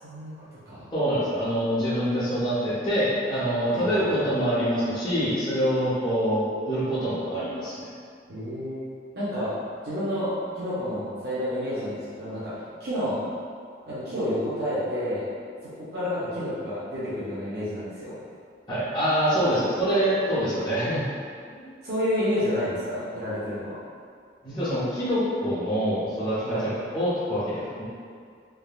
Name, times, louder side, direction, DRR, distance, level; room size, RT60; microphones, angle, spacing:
voice 1, 0.0-0.9 3.7-4.0 8.3-8.8 9.2-13.3 13.9-15.3 15.6-18.2 19.5-19.6 21.8-23.8 26.4-26.7, left 1 dB, 60° right, -11 dB, 0.6 m, -30 dB
voice 2, 0.9-7.9 18.7-21.0 21.5-21.7 24.4-27.8, equal, 25° left, -13 dB, 0.7 m, -25 dB
3.4 x 2.2 x 2.3 m, 2.2 s
head